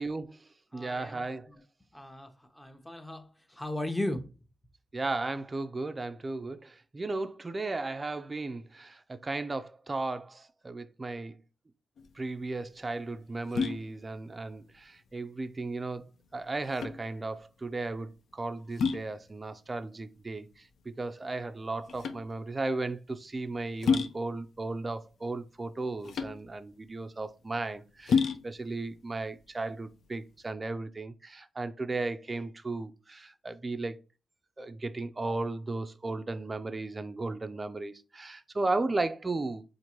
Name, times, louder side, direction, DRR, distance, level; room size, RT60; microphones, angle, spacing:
voice 1, 0.0-1.5 4.9-11.4 12.1-34.0 34.6-39.6, right 3 dB, 30° right, 0.3 m, -35 dB
voice 2, 0.7-1.6 1.9-4.3, left 1 dB, 10° left, 0.7 m, -37 dB
sound 1, 12.0-30.5, left 5 dB, 75° left, 0.4 m, -34 dB
4.4 x 2.5 x 2.9 m
cardioid pair, 65°, 0 cm